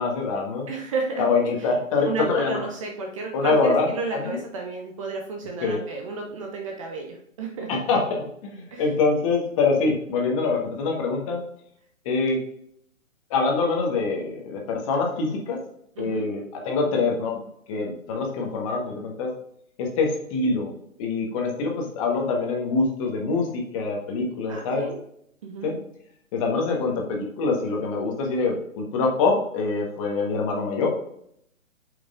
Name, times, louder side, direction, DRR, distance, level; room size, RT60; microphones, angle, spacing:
voice 1, 0.0-0.7 1.2-2.7 3.3-4.4 5.6-5.8 7.7-11.4 12.0-12.4 13.3-15.6 16.0-17.4 17.7-19.3 19.8-20.7 21.0-24.9 25.6-25.8 26.3-30.9, left 4 dB, 25° left, 0 dB, 1.5 m, -25 dB
voice 2, 0.7-1.2 1.6-1.7 2.0-7.7 8.7-8.8 16.0-16.3 24.5-25.0 25.4-25.7, right 4 dB, 25° right, 2 dB, 0.8 m, -32 dB
7.1 x 5.5 x 3.6 m, 0.70 s
figure-of-eight pair, 140°, 40 cm